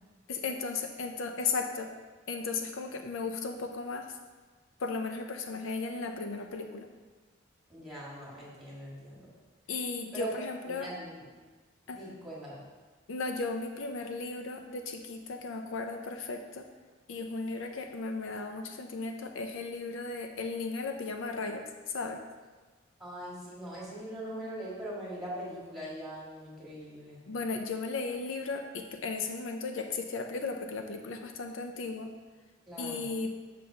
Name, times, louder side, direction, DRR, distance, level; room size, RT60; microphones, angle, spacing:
voice 1, 0.3-1.9 2.3-4.2 4.8-6.9 9.7-10.9 11.9-12.0 13.1-16.7 17.1-22.2 27.3-32.1 32.8-33.4, left 4 dB, 70° left, 5 dB, 0.5 m, -35 dB
voice 2, 7.7-9.3 10.1-10.3 10.7-11.3 11.9-12.6 23.0-27.2 32.7-33.0, right 1 dB, ahead, -7 dB, 1.9 m, -41 dB
6.5 x 3.8 x 5.5 m, 1.3 s
head